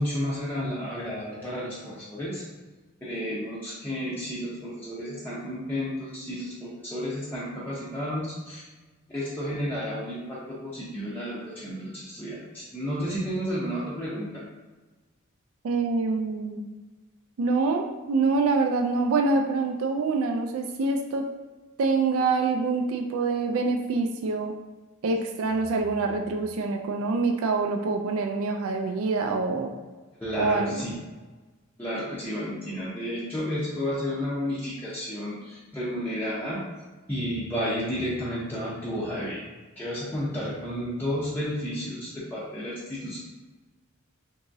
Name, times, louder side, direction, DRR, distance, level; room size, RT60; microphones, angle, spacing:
voice 1, 0.0-2.4 3.0-8.7 9.1-14.4 30.2-31.0 31.8-36.6 37.1-39.4 39.8-43.2, equal, 10° left, -10 dB, 0.5 m, -32 dB
voice 2, 15.6-16.6 17.4-21.3 21.8-24.5 25.0-29.7 30.4-30.8, right 3 dB, 65° right, 3 dB, 0.3 m, -25 dB
3.5 x 2.9 x 2.6 m, 1.2 s
head